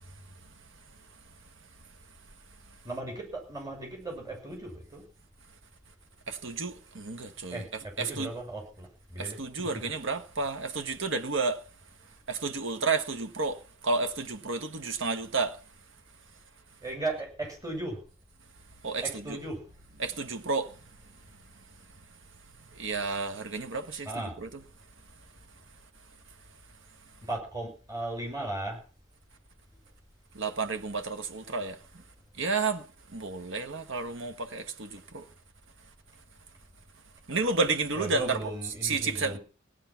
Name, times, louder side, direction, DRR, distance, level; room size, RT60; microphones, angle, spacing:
voice 1, 2.8-5.0 7.5-9.7 16.8-18.0 19.0-19.6 24.0-24.3 27.3-28.8 38.0-39.4, right 2 dB, 15° right, 6.4 m, -36 dB
voice 2, 6.3-8.3 9.2-11.6 12.3-13.6 13.8-15.6 18.8-19.4 20.0-20.7 22.8-24.6 30.3-31.8 32.4-32.8 33.1-35.2 37.3-39.4, right 3 dB, 60° right, 1.5 m, -31 dB
17.5 x 9.8 x 5.9 m
head